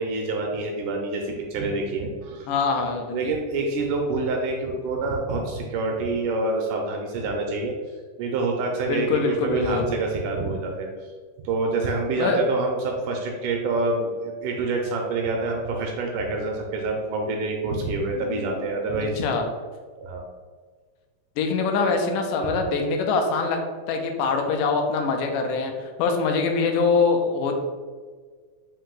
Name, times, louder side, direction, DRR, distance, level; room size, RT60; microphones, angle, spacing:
voice 1, 0.0-2.5 3.1-7.7 8.2-10.9 11.4-19.2 20.0-20.2, right 3 dB, 80° right, 1 dB, 1.9 m, -27 dB
voice 2, 2.5-3.4 8.9-9.9 12.2-12.4 18.1-19.5 21.4-23.6 23.9-27.5, left 4 dB, 80° left, 3 dB, 2.0 m, -24 dB
5.4 x 2.6 x 3.7 m, 1.5 s
omnidirectional pair, 3.9 m